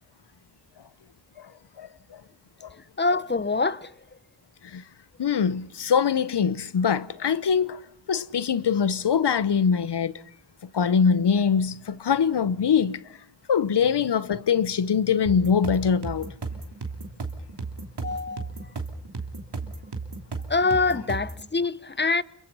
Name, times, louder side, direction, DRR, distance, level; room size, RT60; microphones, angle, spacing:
voice 1, 1.8-2.2 2.6-2.7 3.1-3.2 4.6-4.8 5.2-7.8 8.1-10.1 10.7-13.0 13.5-16.3, left 6 dB, 75° left, 1.0 m, -23 dB
voice 2, 3.0-3.9 18.0-18.5 20.5-22.2, left 3 dB, 25° left, 0.9 m, -24 dB
sound 1, 15.3-21.4, right 4 dB, 70° right, 3.1 m, -34 dB
28.0 x 23.0 x 5.5 m
cardioid pair, 45°, 41 cm